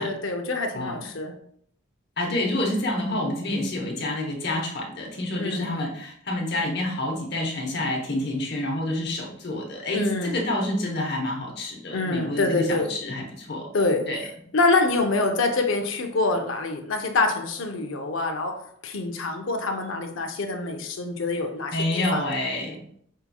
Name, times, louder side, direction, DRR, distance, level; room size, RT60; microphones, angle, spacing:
voice 1, 0.0-1.3 5.4-5.7 9.9-10.4 11.9-12.9 13.7-14.1 14.5-18.5 18.8-22.2, left 3 dB, 75° left, 4 dB, 0.6 m, -25 dB
voice 2, 2.2-13.7 14.1-14.2 21.7-22.7, left 1 dB, 55° left, -1 dB, 1.0 m, -28 dB
5.6 x 2.8 x 2.3 m, 0.66 s
head